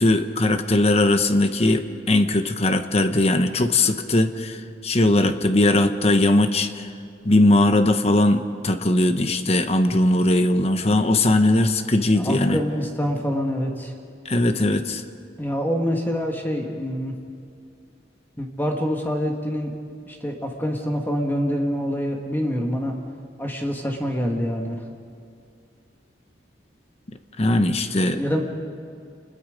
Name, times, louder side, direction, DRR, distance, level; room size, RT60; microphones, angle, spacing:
voice 1, 0.0-6.9 7.2-12.6 14.2-15.0 27.4-28.2, left 1 dB, 35° left, 9 dB, 1.0 m, -19 dB
voice 2, 12.1-13.9 15.4-17.1 18.4-19.7 20.0-22.9 23.4-24.8 28.1-28.4, equal, 10° left, 2 dB, 1.8 m, -26 dB
28.5 x 21.5 x 5.2 m, 2.3 s
head